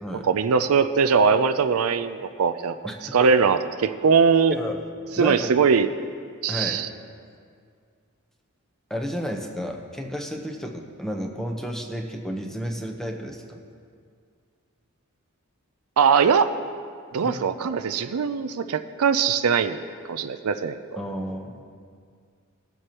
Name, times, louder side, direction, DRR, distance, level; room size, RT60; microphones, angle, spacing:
voice 1, 0.2-2.8 3.1-4.5 5.2-5.9 6.4-6.9 16.0-16.5 17.1-19.8 20.1-20.8, right 6 dB, 85° right, 10 dB, 0.5 m, -21 dB
voice 2, 2.8-3.3 4.5-4.8 5.2-5.5 6.5-6.8 8.9-13.6 17.2-17.3 21.0-21.6, equal, ahead, 2 dB, 0.9 m, -32 dB
19.5 x 7.8 x 3.0 m, 2.1 s
head